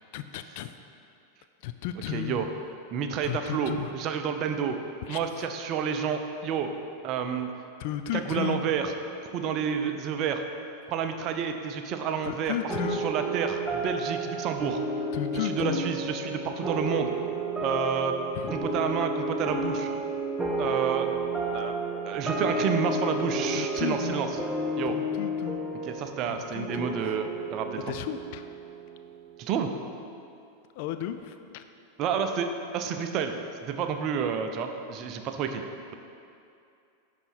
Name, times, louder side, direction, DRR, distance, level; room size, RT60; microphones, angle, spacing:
voice 1, 0.1-0.7 1.6-2.5 3.2-4.0 5.1-5.5 7.8-8.6 12.2-13.0 15.1-15.8 18.4-18.7 23.5-24.3 24.9-25.6 26.3-27.2 27.8-28.4 30.7-31.6, left 11 dB, 50° left, 9 dB, 0.3 m, -34 dB
voice 2, 2.1-2.5 2.9-4.8 5.1-6.7 7.0-7.5 8.1-8.9 9.3-10.4 10.9-12.6 12.8-14.8 15.3-17.1 17.6-18.2 18.5-19.9 20.6-21.1 21.5-21.8 22.0-24.3 24.8-25.0 25.9-27.8 29.4-29.7 32.0-33.3 33.6-35.6, right 7 dB, 35° right, 6 dB, 0.6 m, -29 dB
sound 1, 12.7-29.5, right 1 dB, 10° right, 0.9 m, -32 dB
11.0 x 4.1 x 4.5 m, 2.5 s
figure-of-eight pair, 90°, 0 cm